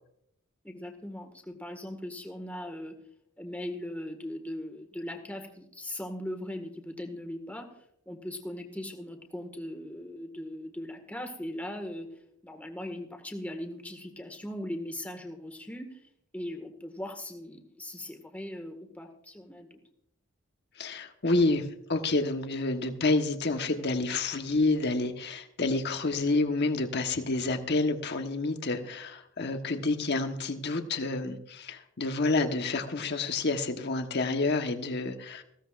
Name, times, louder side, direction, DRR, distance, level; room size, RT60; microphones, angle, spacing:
voice 1, 0.6-3.0 3.4-7.7 8.1-12.1 12.4-16.0 16.3-19.8, left 1 dB, 5° left, 4 dB, 1.7 m, -39 dB
voice 2, 20.8-35.4, left 3 dB, 50° left, 6 dB, 1.2 m, -29 dB
19.5 x 16.0 x 2.5 m, 0.75 s
head